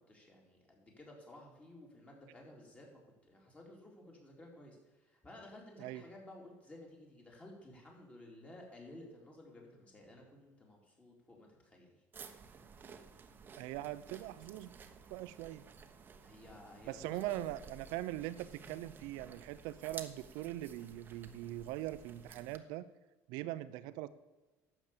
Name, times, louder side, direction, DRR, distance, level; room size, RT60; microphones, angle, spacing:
voice 1, 0.1-11.9 16.2-17.5, left 1 dB, 20° left, -1 dB, 4.0 m, -55 dB
sound 1, 12.1-22.6, right 5 dB, 30° right, 1.1 m, -54 dB
voice 2, 13.5-14.7 15.1-15.6 16.9-22.9 23.3-24.1, right 15 dB, 80° right, 14 dB, 0.8 m, -41 dB
12.0 x 8.1 x 7.5 m, 1.2 s
cardioid pair, 125°, 7 cm